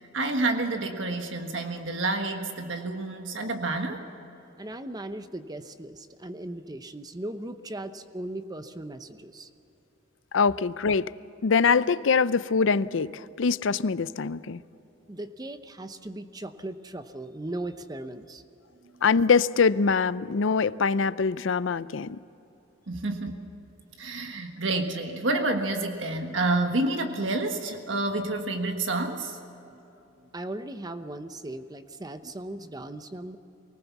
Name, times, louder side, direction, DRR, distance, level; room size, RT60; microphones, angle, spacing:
voice 1, 0.0-4.0 22.9-23.4 24.0-29.4, right 2 dB, 70° right, 5 dB, 1.5 m, -28 dB
voice 2, 4.6-9.5 15.1-18.4 30.3-33.4, right 1 dB, 20° right, 9 dB, 0.8 m, -38 dB
voice 3, 10.3-11.1 11.4-14.6 19.0-22.2, left 5 dB, 75° left, 17 dB, 0.5 m, -23 dB
24.5 x 19.0 x 7.2 m, 3.0 s
head